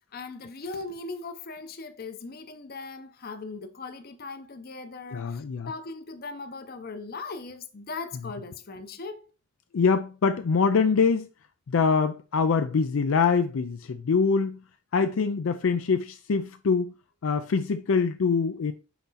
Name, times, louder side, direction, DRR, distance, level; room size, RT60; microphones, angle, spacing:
voice 1, 0.1-9.3, left 3 dB, 50° left, 0.7 m, -39 dB
voice 2, 5.1-5.7 9.7-11.3 11.7-14.6 14.9-16.9 17.2-18.7, left 5 dB, 80° left, 0.4 m, -24 dB
5.8 x 4.2 x 4.1 m
head